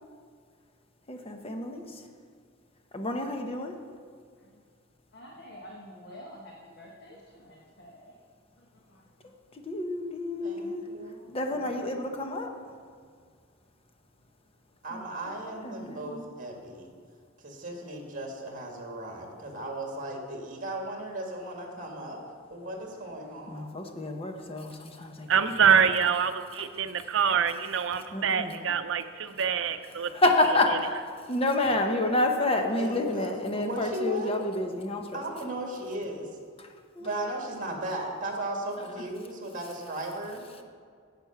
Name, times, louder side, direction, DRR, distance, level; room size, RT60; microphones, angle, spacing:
voice 1, 1.1-2.0 2.9-3.7 9.6-10.9 11.3-12.5 14.9-15.4 15.6-16.3 23.5-25.6 26.6-26.7 28.1-28.6 29.9-30.9 31.3-35.2 36.6-36.7 36.9-37.1, left 2 dB, 30° left, 4 dB, 0.9 m, -29 dB
voice 2, 5.1-8.3 8.6-9.3, equal, 55° left, -1 dB, 1.2 m, -49 dB
voice 3, 10.4-11.3 14.8-16.9 17.4-22.2 22.5-23.6 32.8-34.3 35.1-36.3 37.0-40.6, right 1 dB, 40° right, 1 dB, 1.9 m, -36 dB
voice 4, 25.3-30.1, right 7 dB, 65° right, 9 dB, 0.6 m, -25 dB
10.5 x 7.9 x 5.8 m, 2.1 s
head